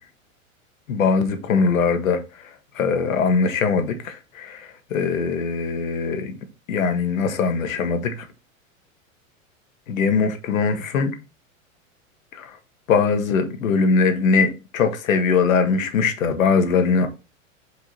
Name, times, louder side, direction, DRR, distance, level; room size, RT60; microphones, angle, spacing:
voice 1, 0.9-2.2 2.7-6.4 6.7-8.1 9.9-11.1 12.4-12.5 12.9-17.1, left 5 dB, 75° left, 1.5 m, -21 dB
5.0 x 5.0 x 4.2 m
hypercardioid pair, 105°, 40 cm